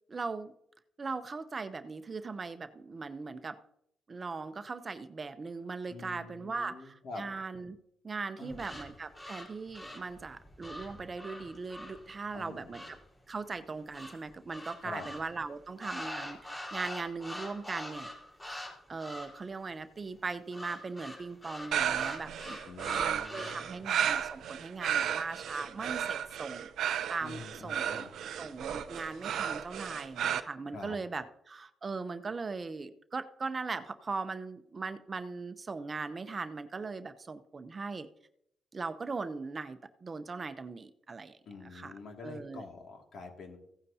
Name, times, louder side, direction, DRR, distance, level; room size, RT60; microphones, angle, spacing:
voice 1, 0.1-0.5 1.0-3.6 4.1-7.8 8.0-12.8 13.3-18.1 18.9-22.6 22.9-26.7 27.1-28.0 28.4-38.1 38.7-41.4 41.7-41.9 42.2-42.6, right 4 dB, 35° right, 10 dB, 0.7 m, -39 dB
voice 2, 5.9-7.2 8.4-8.7 12.3-12.9 14.8-15.1 22.6-23.8 27.2-28.2 30.7-31.0 41.5-43.6, left 3 dB, 70° left, 2 dB, 2.3 m, -46 dB
sound 1, 8.5-13.1 13.9-15.3 15.8-18.7 19.0-19.4 20.5-23.8, left 1 dB, 20° left, 4.4 m, -44 dB
sound 2, 21.7-30.4, right 9 dB, 80° right, 0.6 m, -33 dB
16.0 x 9.4 x 2.8 m, 0.74 s
cardioid pair, 95°, 0 cm